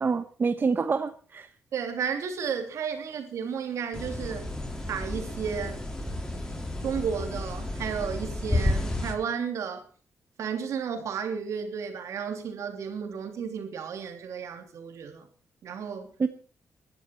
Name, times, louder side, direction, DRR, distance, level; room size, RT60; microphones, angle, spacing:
voice 1, 0.0-1.5 16.2-16.3, right 5 dB, 40° right, 1.0 m, -26 dB
voice 2, 1.7-4.5 4.9-5.8 6.8-9.8 10.4-15.3 15.6-16.1, right 7 dB, 75° right, 3.1 m, -33 dB
sound 1, 3.9-9.1, left 1 dB, 15° left, 4.8 m, -31 dB
20.5 x 12.0 x 4.5 m
cardioid pair, 65°, 5 cm